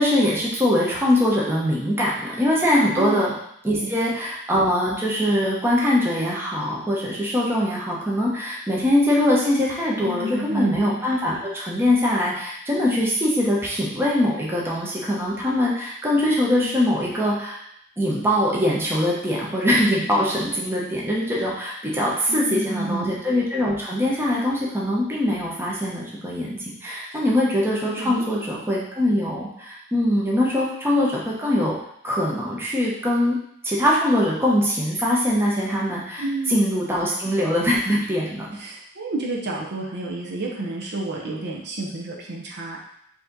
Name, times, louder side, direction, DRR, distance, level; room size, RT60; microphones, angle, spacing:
voice 1, 0.0-3.3 3.6-17.6 18.0-31.8 32.0-33.4 33.6-38.5, left 1 dB, 10° right, -5 dB, 0.9 m, -22 dB
voice 2, 2.9-3.3 3.8-3.9 10.0-10.8 16.6-16.8 22.3-23.1 27.1-27.2 28.0-28.3 36.2-36.6 38.6-42.8, right 2 dB, 50° right, -2 dB, 0.7 m, -30 dB
4.7 x 2.8 x 3.9 m, 0.71 s
head